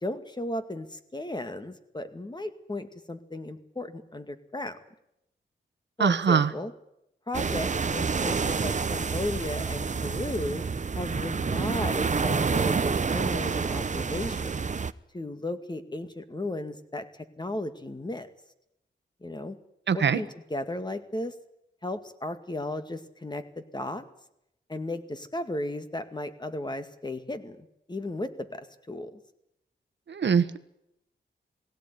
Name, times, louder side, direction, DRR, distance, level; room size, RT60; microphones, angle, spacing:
voice 1, 0.0-4.8 6.0-6.7 7.3-10.6 10.9-14.7 15.1-18.3 19.2-19.6 19.9-21.3 21.8-24.0 24.7-29.2, left 1 dB, 20° left, 9 dB, 2.1 m, -35 dB
voice 2, 6.0-6.5 19.9-20.2 30.1-30.6, right 6 dB, 65° right, 12 dB, 1.4 m, -22 dB
sound 1, 7.3-14.9, right 5 dB, 40° right, 0.8 m, -28 dB
19.5 x 17.0 x 9.7 m, 0.81 s
cardioid pair, 75°, 20 cm